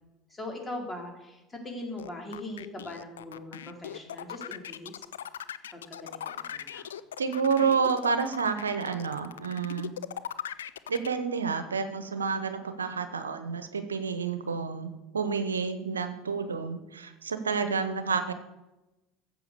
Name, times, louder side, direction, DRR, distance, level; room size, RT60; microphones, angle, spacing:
voice 1, 0.3-5.1 5.7-6.8, left 1 dB, 20° left, 2 dB, 3.9 m, -40 dB
sound 1, 2.0-11.1, left 10 dB, 80° left, 0.5 m, -39 dB
voice 2, 7.2-10.0 10.9-18.3, right 5 dB, 90° right, 10 dB, 0.9 m, -29 dB
14.0 x 7.9 x 6.8 m, 1.0 s
hypercardioid pair, 70°, 0 cm